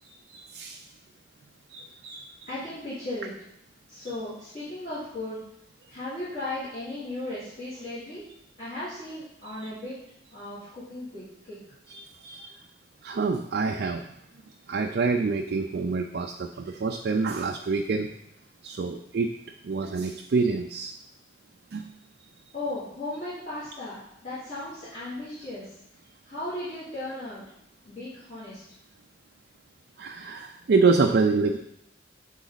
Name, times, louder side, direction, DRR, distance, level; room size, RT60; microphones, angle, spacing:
voice 1, 0.3-0.8 1.7-2.3 9.6-9.7 11.9-12.5 13.0-14.0 14.7-18.1 18.6-19.3 19.6-20.9 21.7-21.9 30.0-31.6, right 4 dB, 55° right, 3 dB, 0.4 m, -26 dB
voice 2, 2.5-3.3 3.9-5.4 5.9-8.3 8.6-10.0 10.3-11.6 22.5-25.7 26.2-27.4 27.8-28.6, left 1 dB, 45° left, -13 dB, 2.6 m, -36 dB
7.2 x 3.8 x 4.0 m, 0.76 s
head